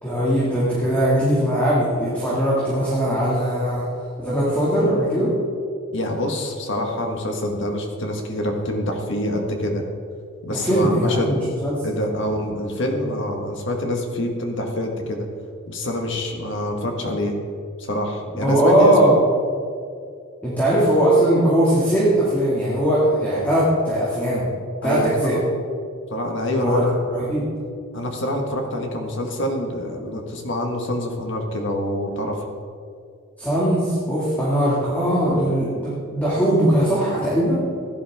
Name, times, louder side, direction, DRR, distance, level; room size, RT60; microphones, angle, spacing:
voice 1, 0.0-3.9 4.2-5.3 10.5-11.9 18.4-19.2 20.4-24.5 24.8-25.4 26.6-27.5 33.4-37.6, right 1 dB, 10° left, -8 dB, 2.3 m, -20 dB
voice 2, 5.9-9.8 10.4-11.4 11.8-15.3 15.7-17.4 17.8-18.9 24.8-25.4 26.1-26.9 27.9-32.4, left 1 dB, 60° left, 2 dB, 1.7 m, -26 dB
16.0 x 11.0 x 3.6 m, 2.3 s
head